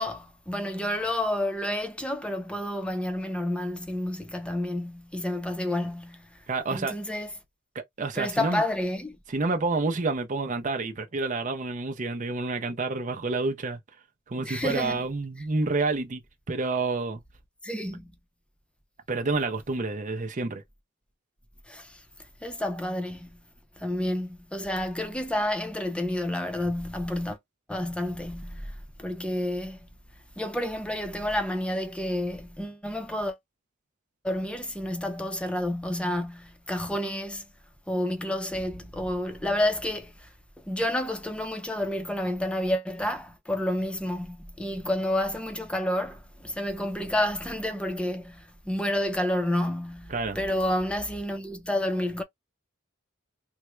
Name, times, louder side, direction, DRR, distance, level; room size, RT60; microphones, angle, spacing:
voice 1, 0.0-6.3 6.7-7.3 8.2-9.2 14.5-15.0 17.6-18.1 21.7-22.0 22.4-23.4 23.8-27.4 27.7-29.9 30.4-33.4 34.2-37.5 37.9-40.3 40.6-52.2, left 1 dB, 5° left, 0.6 m, -30 dB
voice 2, 6.5-6.9 7.7-8.6 9.3-13.8 14.3-16.2 16.5-17.2 19.1-20.6 50.1-50.4, right 3 dB, 40° right, 0.6 m, -29 dB
3.5 x 2.2 x 3.0 m
head